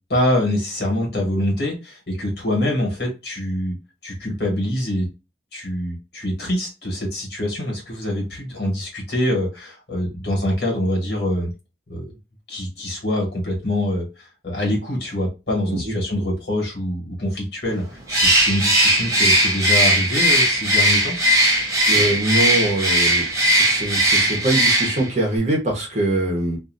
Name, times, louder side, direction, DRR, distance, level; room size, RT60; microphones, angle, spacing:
voice 1, 0.1-3.8 4.0-5.1 5.5-11.5 11.9-12.0 12.5-21.1, left 1 dB, 60° left, 0 dB, 1.5 m, -25 dB
Bird, 18.1-25.1, right 1 dB, 15° right, 0.8 m, -18 dB
voice 2, 21.9-23.2 23.6-26.6, right 1 dB, 40° right, -1 dB, 1.1 m, -23 dB
2.7 x 2.5 x 2.6 m, 0.28 s
head